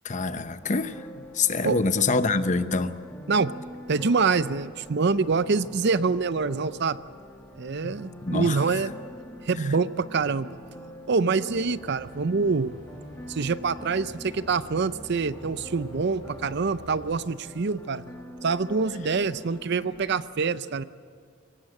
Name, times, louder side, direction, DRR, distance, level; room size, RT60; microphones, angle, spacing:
voice 1, 0.0-1.0 1.3-3.0 7.8-7.9 8.2-8.6, left 4 dB, 40° left, 11 dB, 0.9 m, -25 dB
sound 1, 0.6-20.2, left 1 dB, 10° left, 2.0 m, -44 dB
voice 2, 3.9-7.0 7.6-8.9 9.4-10.6 11.1-12.7 13.3-18.0 18.4-20.8, right 4 dB, 55° right, 15 dB, 0.6 m, -25 dB
sound 2, 11.5-17.2, equal, 35° right, 7.6 m, -48 dB
23.0 x 18.5 x 7.7 m, 2.2 s
head